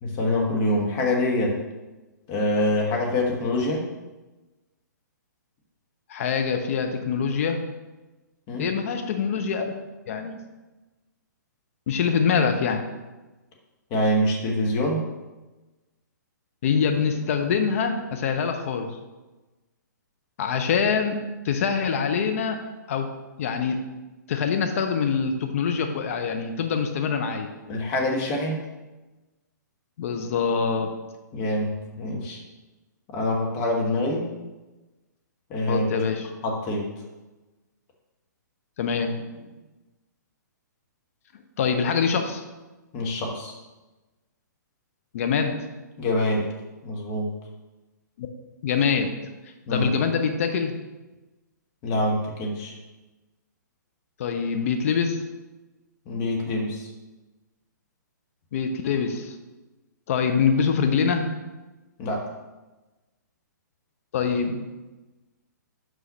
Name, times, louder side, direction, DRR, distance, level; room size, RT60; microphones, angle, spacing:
voice 1, 0.0-1.6 2.3-3.8 8.5-8.7 13.9-15.0 27.7-28.6 31.3-32.4 33.1-34.2 35.5-36.0 36.4-36.9 42.9-43.5 46.0-46.5 46.8-47.3 49.7-50.0 51.8-52.7 56.1-56.9 62.0-62.3, left 1 dB, 30° left, -1 dB, 1.4 m, -25 dB
voice 2, 6.1-7.6 8.6-9.7 10.1-10.4 11.9-12.9 16.6-19.0 20.4-22.6 22.9-23.1 23.4-23.8 24.3-27.5 30.0-30.9 35.7-36.3 38.8-39.5 41.6-42.4 45.1-45.7 48.2-48.3 48.6-49.2 49.7-50.7 54.2-55.2 58.5-59.4 60.1-61.3 64.1-64.7, left 6 dB, 45° left, 5 dB, 0.8 m, -24 dB
5.8 x 5.5 x 5.5 m, 1.1 s
figure-of-eight pair, 125°, 10 cm